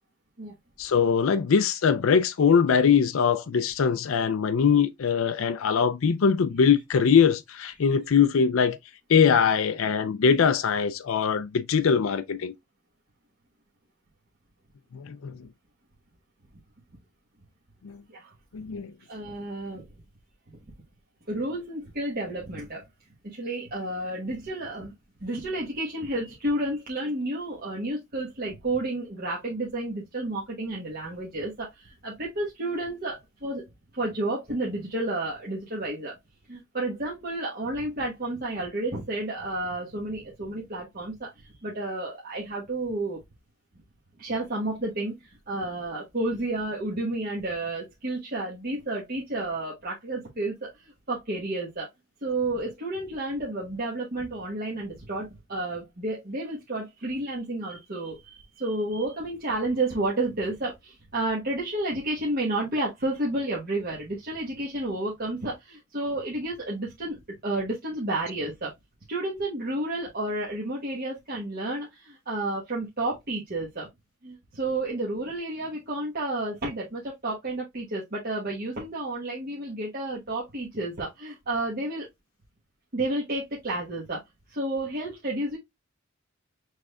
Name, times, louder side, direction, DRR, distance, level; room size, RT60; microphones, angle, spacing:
voice 1, 0.8-8.8 9.1-12.5 14.9-15.3 17.8-18.0 18.5-18.9, left 6 dB, 80° left, 0.4 m, -22 dB
voice 2, 19.1-19.9 20.5-20.6 21.3-22.9 23.2-24.9 25.2-33.6 33.9-36.2 36.5-43.2 44.2-51.9 52.2-68.7 69.1-73.9 74.2-82.1 82.9-84.2 84.5-85.6, right 2 dB, 50° right, 1.2 m, -31 dB
6.2 x 3.3 x 2.3 m
head